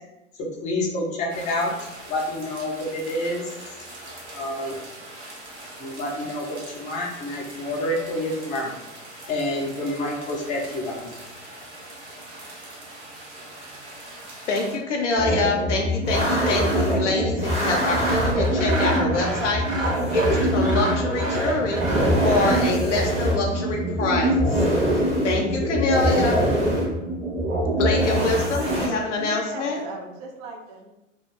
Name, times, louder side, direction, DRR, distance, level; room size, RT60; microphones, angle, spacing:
voice 1, 0.3-1.7 2.1-3.5 4.3-4.8 5.8-8.8 9.3-11.1, left 1 dB, 20° left, -1 dB, 0.5 m, -28 dB
sound 1, 1.3-14.7, right 1 dB, 60° right, 0.9 m, -42 dB
voice 2, 14.5-24.6 24.9-26.4 27.8-29.8, left 3 dB, 70° left, 0 dB, 0.6 m, -25 dB
sound 2, 15.2-28.9, equal, 15° right, 0.8 m, -23 dB
Sawing, 17.9-22.7, right 2 dB, 85° right, 0.6 m, -30 dB
voice 3, 29.1-30.9, right 3 dB, 35° right, 2 dB, 0.4 m, -37 dB
2.4 x 2.2 x 3.0 m, 0.95 s
figure-of-eight pair, 95°, 38 cm